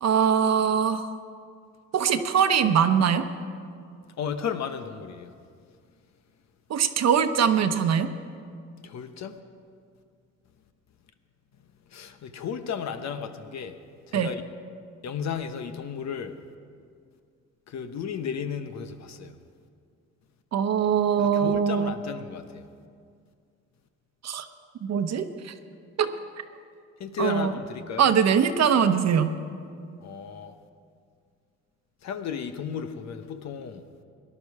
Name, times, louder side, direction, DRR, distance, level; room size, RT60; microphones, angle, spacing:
voice 1, 0.0-1.1 1.9-3.3 6.7-8.1 14.1-14.3 20.5-21.9 24.2-24.5 24.8-25.5 26.0-26.1 27.2-27.6 28.0-29.3, right 7 dB, 60° right, 9 dB, 0.9 m, -22 dB
voice 2, 4.2-5.3 8.8-9.4 11.9-13.7 14.1-14.4 15.0-16.3 17.7-19.3 21.2-22.6 27.0-28.1 30.0-30.5 32.0-33.8, left 7 dB, 65° left, 9 dB, 1.0 m, -34 dB
18.0 x 11.5 x 4.8 m, 2.2 s
cardioid pair, 90°, 30 cm